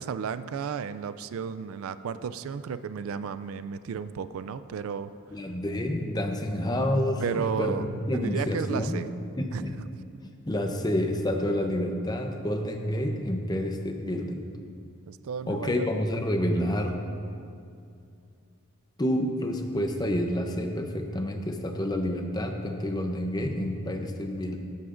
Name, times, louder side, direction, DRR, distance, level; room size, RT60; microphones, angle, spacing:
voice 1, 0.0-5.1 7.2-7.9 8.1-9.1 9.5-9.6 15.1-15.9, right 6 dB, 75° right, 13 dB, 0.3 m, -33 dB
voice 2, 5.3-9.1 9.4-9.7 10.5-14.5 15.5-17.0 19.0-24.6, left 1 dB, 20° left, 4 dB, 0.6 m, -28 dB
14.5 x 11.0 x 2.5 m, 2.4 s
head